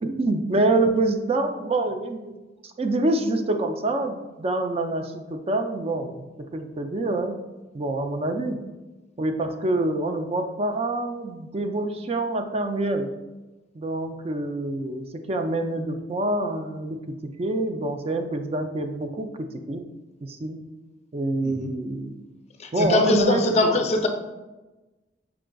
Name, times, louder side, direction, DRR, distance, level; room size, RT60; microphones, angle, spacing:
voice 1, 0.0-2.4 2.6-7.4 7.7-8.6 9.2-13.1 13.7-19.8 20.2-20.6 21.1-22.2 22.7-23.8, right 2 dB, 35° right, 6 dB, 0.4 m, -26 dB
voice 2, 22.6-24.1, left 2 dB, 35° left, 4 dB, 0.4 m, -22 dB
5.8 x 3.7 x 2.2 m, 1.1 s
head